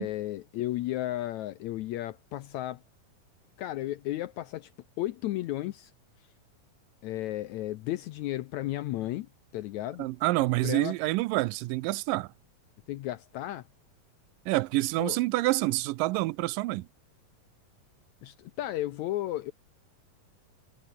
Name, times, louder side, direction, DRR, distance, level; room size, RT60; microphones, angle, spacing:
voice 1, 0.0-2.8 3.6-4.7 5.0-5.9 7.0-10.1 10.6-10.9 12.9-13.7 15.0-15.2 18.2-19.5, left 15 dB, 80° left, 1.6 m, -34 dB
voice 2, 10.0-12.3 14.5-16.9, right 19 dB, 80° right, 2.2 m, -27 dB
omnidirectional pair, 4.1 m